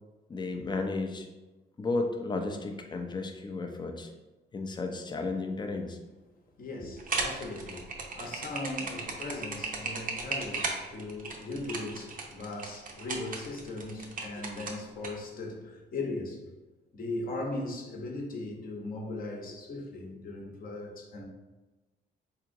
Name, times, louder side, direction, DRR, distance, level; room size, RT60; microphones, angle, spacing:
voice 1, 0.3-1.3 1.8-4.1 4.5-6.0, left 3 dB, 20° left, 0.5 m, -33 dB
voice 2, 6.6-16.4 16.9-21.2, left 2 dB, 45° left, 0.8 m, -38 dB
sound 1, 7.0-15.1, right 4 dB, 45° right, 0.6 m, -35 dB
3.7 x 2.8 x 2.5 m
cardioid pair, 90°, 20 cm